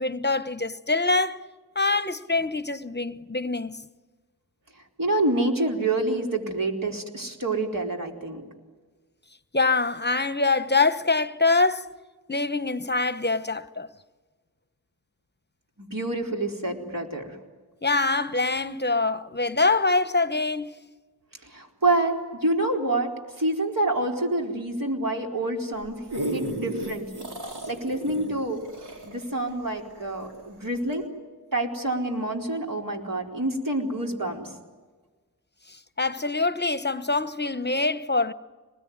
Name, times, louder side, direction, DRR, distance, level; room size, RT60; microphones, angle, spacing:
voice 1, 0.0-1.4 1.7-3.8 9.5-11.9 12.3-13.9 17.8-20.7 36.0-38.3, left 3 dB, 25° left, 1.0 m, -24 dB
voice 2, 5.0-8.4 15.8-17.4 21.4-26.1 26.3-27.3 27.7-28.6 29.0-31.1 31.5-34.5, right 2 dB, 60° right, 4.3 m, -27 dB
sound 1, 25.7-30.4 30.9-31.0, right 1 dB, 90° right, 4.1 m, -34 dB
26.5 x 20.5 x 9.6 m
cardioid pair, 45°, 38 cm